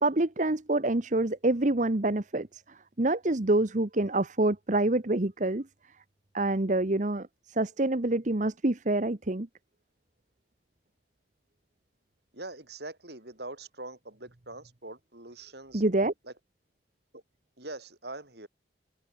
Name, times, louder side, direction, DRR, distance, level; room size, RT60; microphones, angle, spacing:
voice 1, 0.0-2.6 3.0-5.6 6.3-9.5 15.7-16.1, right 2 dB, 40° right, 1.1 m, -26 dB
voice 2, 12.3-15.8 16.2-16.3 17.1-17.2 17.6-18.5, right 2 dB, 60° right, 6.2 m, -43 dB
head